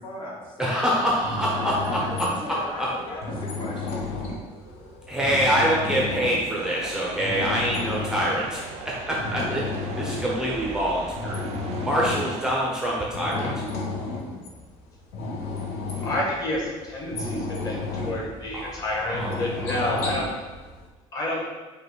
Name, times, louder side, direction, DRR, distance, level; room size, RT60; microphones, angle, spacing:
voice 1, 0.0-0.9 1.4-4.1, left 1 dB, 45° left, -3 dB, 0.9 m, -36 dB
voice 2, 0.6-2.9 5.1-11.4 11.8-13.6 18.5-19.4 19.6-20.0, equal, 5° right, -4 dB, 0.5 m, -26 dB
sound 1, 1.2-20.9, left 3 dB, 75° left, 0.9 m, -33 dB
sound 2, 6.6-12.6, right 6 dB, 65° right, 0.4 m, -39 dB
voice 3, 16.0-20.3 21.1-21.5, left 1 dB, 30° left, -4 dB, 1.2 m, -29 dB
5.4 x 2.2 x 3.9 m, 1.3 s
cardioid pair, 150°, 12 cm